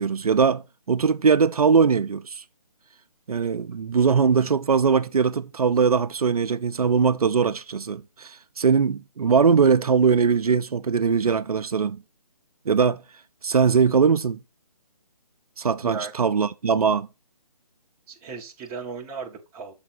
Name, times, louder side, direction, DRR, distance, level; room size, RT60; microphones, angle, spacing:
voice 1, 0.0-2.4 3.3-12.0 12.7-13.0 13.4-14.4 15.6-17.1, right 6 dB, 75° right, 0.6 m, -21 dB
voice 2, 18.1-19.7, right 5 dB, 10° right, 0.7 m, -35 dB
6.9 x 3.7 x 4.4 m
figure-of-eight pair, 150°, 20 cm